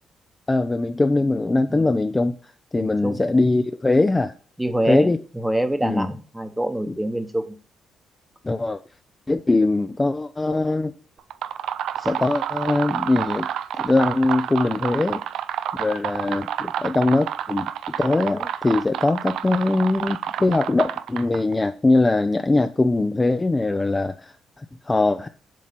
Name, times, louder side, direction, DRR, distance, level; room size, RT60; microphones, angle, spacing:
voice 1, 0.5-2.3 2.7-4.3 4.9-5.2 5.8-6.1 6.9-7.0 8.4-8.8 9.3-10.9 12.0-13.5 13.8-15.2 15.8-25.3, left 2 dB, 20° left, 9 dB, 0.4 m, -21 dB
voice 2, 2.7-3.3 4.6-7.6, right 1 dB, 5° right, 8 dB, 0.9 m, -26 dB
sound 1, 11.2-21.5, right 10 dB, 80° right, 0.3 m, -29 dB
7.5 x 2.7 x 5.6 m, 0.39 s
cardioid pair, 90°, 0 cm